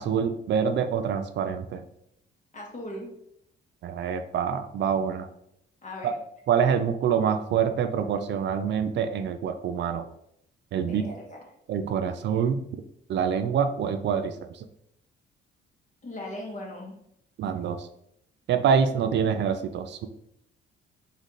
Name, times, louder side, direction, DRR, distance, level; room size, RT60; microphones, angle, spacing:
voice 1, 0.0-1.8 3.8-5.3 6.0-6.1 6.5-10.0 10.7-11.0 11.7-12.6 13.1-14.3 17.4-17.8 18.5-20.1, right 7 dB, 65° right, 8 dB, 0.5 m, -26 dB
voice 2, 2.5-3.1 5.8-6.2 10.8-11.4 16.0-17.0, left 1 dB, 40° left, -2 dB, 1.7 m, -38 dB
4.1 x 3.9 x 3.1 m, 0.75 s
cardioid pair, 90°, 20 cm